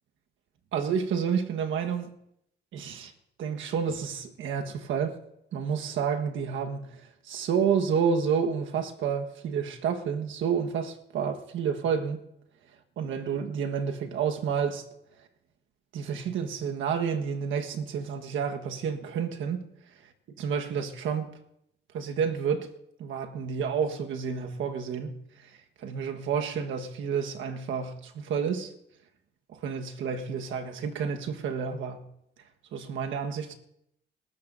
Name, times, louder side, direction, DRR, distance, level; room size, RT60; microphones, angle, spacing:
voice 1, 0.7-2.1 2.7-3.1 3.4-5.2 5.5-12.2 13.0-14.8 15.9-19.6 20.3-21.3 21.9-22.7 23.0-28.7 29.5-32.1 32.7-33.5, right 6 dB, 80° right, 1.4 m, -30 dB
27.5 x 13.0 x 2.6 m
cardioid pair, 90°, 20 cm